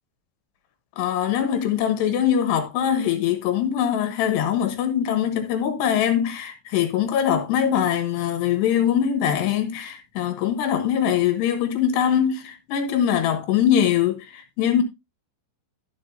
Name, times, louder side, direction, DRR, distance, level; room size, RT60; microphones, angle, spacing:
voice 1, 1.0-14.8, left 9 dB, 70° left, 2.9 m, -22 dB
11.5 x 7.7 x 2.6 m
omnidirectional pair, 5.8 m